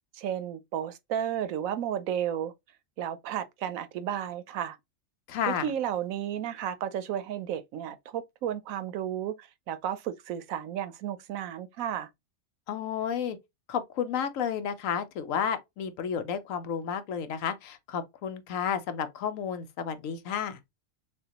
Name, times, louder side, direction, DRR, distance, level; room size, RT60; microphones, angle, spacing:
voice 1, 0.1-2.5 3.0-4.8 5.5-12.1, right 10 dB, 85° right, 1.0 m, -33 dB
voice 2, 5.3-5.7 12.7-13.4 13.7-20.6, left 8 dB, 75° left, 1.1 m, -31 dB
6.3 x 2.3 x 2.8 m
omnidirectional pair, 1.4 m